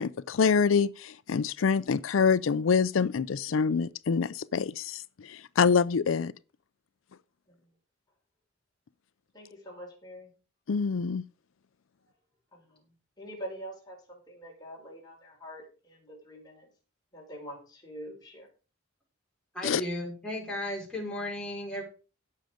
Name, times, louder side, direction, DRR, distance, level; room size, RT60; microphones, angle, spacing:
voice 1, 0.0-6.3 10.7-11.2 19.6-19.8, left 5 dB, 90° left, 0.5 m, -26 dB
voice 2, 9.3-10.3 12.5-16.7 17.1-18.5, equal, 20° left, 5.5 m, -45 dB
voice 3, 19.5-21.8, left 1 dB, 5° left, 5.5 m, -35 dB
17.0 x 6.6 x 5.1 m
head